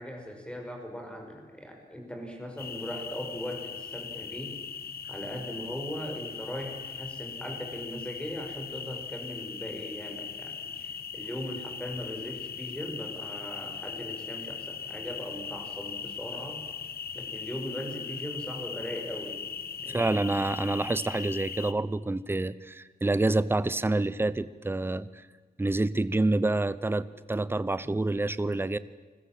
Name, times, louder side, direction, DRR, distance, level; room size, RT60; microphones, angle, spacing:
voice 1, 0.0-4.6 5.1-16.6 17.1-19.4 19.8-20.2, equal, 5° left, 3 dB, 5.8 m, -39 dB
sound 1, 2.6-21.7, left 6 dB, 80° left, 1.2 m, -39 dB
voice 2, 19.9-25.1 25.6-28.8, right 2 dB, 15° right, 16 dB, 0.7 m, -27 dB
28.5 x 21.5 x 7.7 m, 1.4 s
wide cardioid pair, 135°, 16 cm